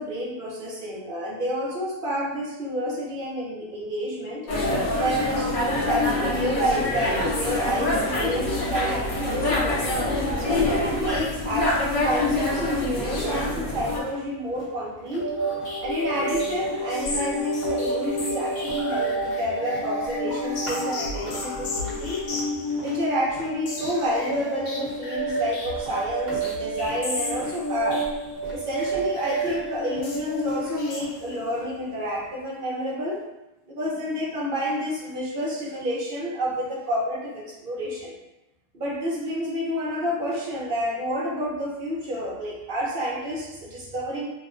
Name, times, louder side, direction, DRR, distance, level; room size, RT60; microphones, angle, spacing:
voice 1, 0.0-4.4 5.0-9.9 10.4-15.3 15.8-22.2 22.8-28.1 28.5-33.2 33.7-38.2 38.7-44.3, equal, 45° right, -5 dB, 0.7 m, -29 dB
sound 1, 4.5-14.0, left 2 dB, 50° left, 0.6 m, -25 dB
sound 2, 13.9-32.4, equal, 25° right, 1.0 m, -45 dB
sound 3, 15.1-31.6, right 1 dB, 70° left, 1.1 m, -30 dB
2.8 x 2.2 x 3.6 m, 0.94 s
omnidirectional pair, 1.6 m